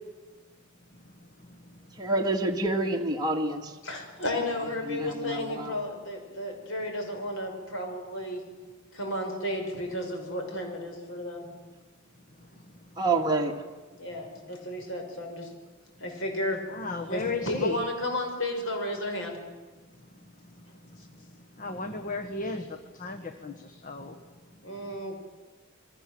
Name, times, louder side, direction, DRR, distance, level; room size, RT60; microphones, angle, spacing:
voice 1, 2.0-3.7 4.9-5.8 13.0-13.7, right 2 dB, 20° right, 0 dB, 2.0 m, -28 dB
voice 2, 3.8-8.4 8.9-11.5 14.0-15.5 16.0-16.6 17.1-19.4 24.6-25.2, left 1 dB, 65° left, 3 dB, 6.3 m, -33 dB
voice 3, 16.7-17.9 21.6-24.2, left 3 dB, 40° left, 6 dB, 1.5 m, -34 dB
28.5 x 22.5 x 7.8 m, 1.3 s
head